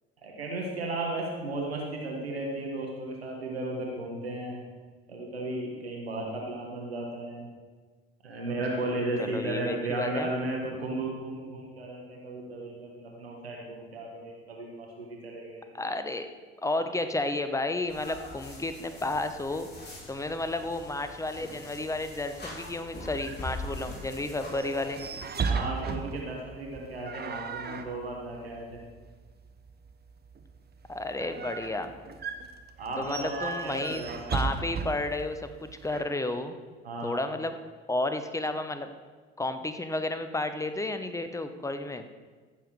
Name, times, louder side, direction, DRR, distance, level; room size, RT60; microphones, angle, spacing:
voice 1, 0.2-4.6 5.1-7.5 8.2-15.7 16.7-16.8 25.4-28.9 31.2-31.4 32.8-34.5 36.8-37.2, right 2 dB, 90° right, -1 dB, 1.5 m, -35 dB
voice 2, 9.2-10.3 15.7-16.3 16.6-19.7 20.1-25.0 30.9-31.9 33.0-34.0 34.3-36.5 37.0-37.6 37.9-38.9 39.4-42.1, left 2 dB, 10° left, 9 dB, 1.0 m, -32 dB
sound 1, 17.9-25.4, left 2 dB, 35° left, 3.7 m, -43 dB
sound 2, 22.9-36.0, right 5 dB, 35° right, 1.2 m, -37 dB
15.0 x 7.2 x 4.8 m, 1.4 s
figure-of-eight pair, 55°, 30 cm